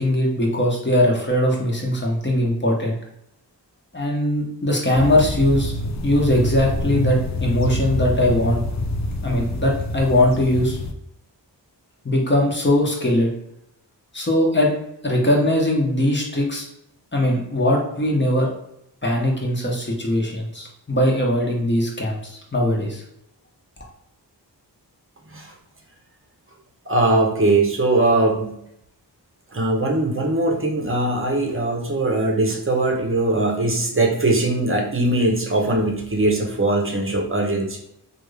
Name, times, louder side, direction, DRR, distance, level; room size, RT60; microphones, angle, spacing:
voice 1, 0.0-2.9 3.9-5.7 6.0-8.6 9.2-10.8 12.0-13.3 14.1-14.7 15.0-16.6 17.1-18.5 19.0-23.0, left 1 dB, 25° left, -2 dB, 1.1 m, -20 dB
sound 1, 4.9-10.9, left 1 dB, 45° left, 0.4 m, -26 dB
voice 2, 26.9-28.5 29.5-37.8, right 2 dB, 30° right, 1 dB, 0.8 m, -21 dB
3.4 x 2.5 x 3.2 m, 0.76 s
wide cardioid pair, 65°, 42 cm